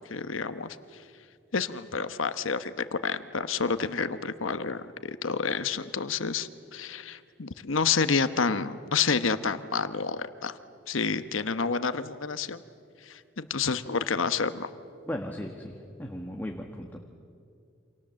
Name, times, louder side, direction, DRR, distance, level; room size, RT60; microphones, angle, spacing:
voice 1, 0.1-0.8 1.5-10.6 10.9-12.6 13.1-14.7, left 5 dB, 80° left, 11 dB, 1.1 m, -29 dB
voice 2, 15.1-17.0, equal, 10° left, 2 dB, 1.5 m, -36 dB
29.0 x 26.0 x 7.6 m, 2.4 s
head